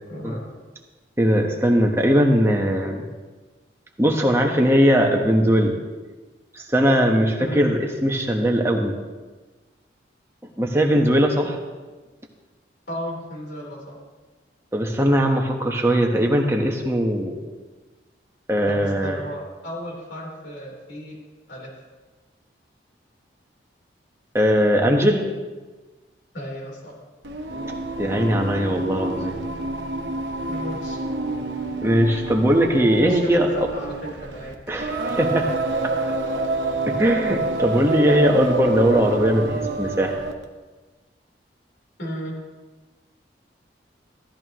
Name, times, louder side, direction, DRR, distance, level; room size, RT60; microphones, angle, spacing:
voice 1, 0.1-0.4 7.4-7.6 12.9-14.0 18.7-21.2 21.5-21.7 26.3-26.9 30.5-31.0 33.0-33.9 34.2-34.5 42.0-42.4, equal, 75° left, -3 dB, 3.9 m, -34 dB
voice 2, 1.2-3.1 4.0-5.8 6.5-9.0 10.6-11.6 14.7-17.4 18.5-19.2 24.3-25.3 28.0-29.4 31.8-33.7 34.7-35.5 36.3-36.4 36.9-40.2, equal, 15° right, 1 dB, 1.2 m, -20 dB
Singing, 27.2-40.4, right 2 dB, 70° right, 1.1 m, -28 dB
14.5 x 13.5 x 3.1 m, 1.3 s
head